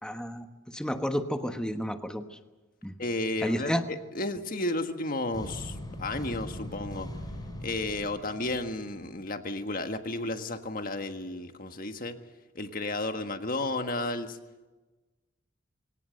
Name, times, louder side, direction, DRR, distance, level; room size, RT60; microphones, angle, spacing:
voice 1, 0.0-2.4 2.8-2.9 3.4-3.8, equal, 5° left, 7 dB, 1.3 m, -31 dB
voice 2, 3.0-7.1 7.6-12.2 12.5-14.4, left 2 dB, 45° left, 7 dB, 1.6 m, -33 dB
sound 1, 5.3-9.3, left 1 dB, 20° left, 5.7 m, -41 dB
24.0 x 18.0 x 7.8 m, 1.2 s
head